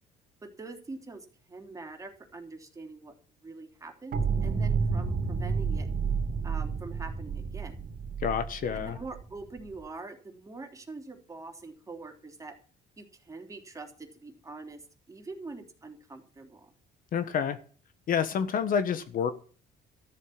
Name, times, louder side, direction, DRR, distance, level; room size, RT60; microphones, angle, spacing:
voice 1, 0.4-3.1 3.4-5.9 6.4-7.9 8.7-12.5 13.0-14.8 15.1-16.7, right 3 dB, 20° right, 4 dB, 3.3 m, -44 dB
sound 1, 4.1-9.8, right 5 dB, 60° right, 2.6 m, -30 dB
voice 2, 8.2-9.0 17.1-17.6 18.1-19.3, left 7 dB, 55° left, 12 dB, 1.4 m, -28 dB
13.5 x 7.6 x 8.7 m, 0.40 s
cardioid pair, 110°, 17 cm